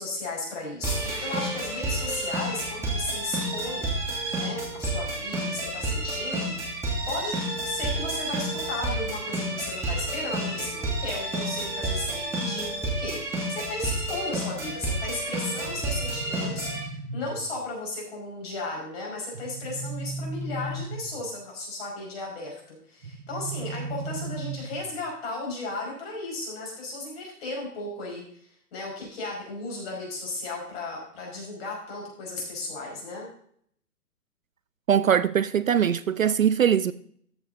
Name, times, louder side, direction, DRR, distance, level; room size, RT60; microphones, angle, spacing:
voice 1, 0.0-3.9 4.4-7.4 7.6-13.2 13.5-33.3, left 2 dB, 35° left, 5.3 m, -35 dB
sound 1, 0.8-16.8, right 1 dB, 5° right, 2.4 m, -30 dB
sound 2, 15.7-17.7 19.3-21.4 23.0-25.0, right 2 dB, 70° right, 1.5 m, -36 dB
voice 2, 34.9-36.9, right 8 dB, 55° right, 0.5 m, -21 dB
14.0 x 7.4 x 3.9 m
figure-of-eight pair, 140°, 49 cm